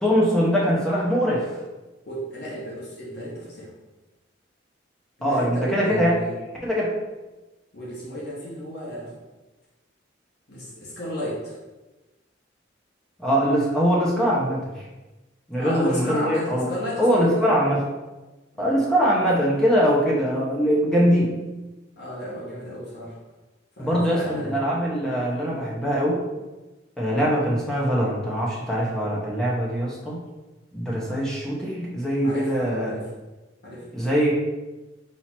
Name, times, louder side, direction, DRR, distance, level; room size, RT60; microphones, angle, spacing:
voice 1, 0.0-1.5 5.2-6.2 6.6-6.9 13.2-14.8 15.5-16.7 17.0-17.8 18.6-21.3 23.8-26.2 27.0-30.2 30.7-32.9 33.9-34.3, equal, 5° left, -5 dB, 0.8 m, -22 dB
voice 2, 2.1-3.7 5.2-6.3 7.7-9.1 10.5-11.5 15.5-17.4 18.5-18.8 22.0-23.1 23.8-24.6 32.2-33.1 33.6-33.9, equal, 55° left, -5 dB, 1.0 m, -33 dB
4.3 x 2.8 x 4.4 m, 1.1 s
head